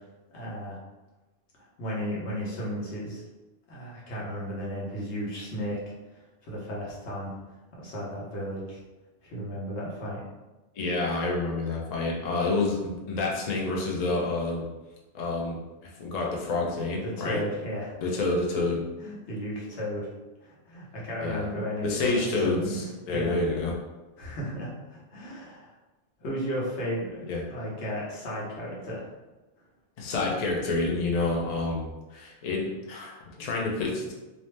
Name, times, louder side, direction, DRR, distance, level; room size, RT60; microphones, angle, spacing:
voice 1, 0.3-0.8 1.6-3.2 3.7-5.8 6.1-7.3 7.8-8.8 9.2-10.2 17.0-17.9 19.0-20.1 20.4-23.4 24.2-25.7 26.2-29.1, equal, 80° left, -5 dB, 1.1 m, -34 dB
voice 2, 10.8-14.7 15.1-17.4 18.0-18.9 21.2-21.5 21.8-23.8 27.3-27.4 30.0-34.1, left 3 dB, 50° left, -2 dB, 0.5 m, -28 dB
2.7 x 2.0 x 3.1 m, 1.1 s
omnidirectional pair, 1.1 m